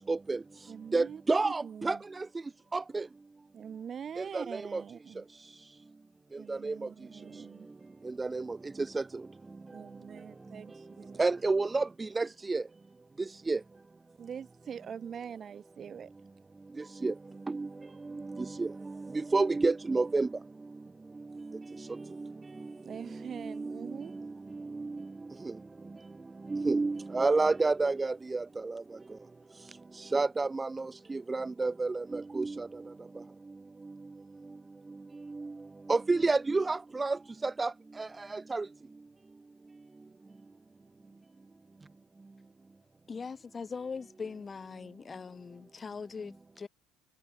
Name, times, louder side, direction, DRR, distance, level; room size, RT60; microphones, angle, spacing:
voice 1, 0.1-0.4 0.9-2.2 2.7-3.0 4.3-4.4 4.7-4.8 6.5-6.7 8.2-8.6 8.9-9.0 11.2-12.6 13.5-13.6 17.0-17.1 17.5-17.7 18.6-18.7 19.3-20.3 23.6-23.7 24.8-24.9 26.5-28.4 30.1-30.8 31.1-32.7 35.9-37.2 37.6-37.7 38.0-38.6, right 3 dB, 20° right, 1.5 m, -29 dB
voice 2, 0.7-2.0 3.5-5.2 6.4-7.7 9.7-11.2 14.2-16.1 18.1-18.3 22.8-24.1, right 7 dB, 40° right, 6.5 m, -44 dB
voice 3, 43.1-46.7, left 5 dB, 30° left, 4.4 m, -41 dB
hypercardioid pair, 70°, 0 cm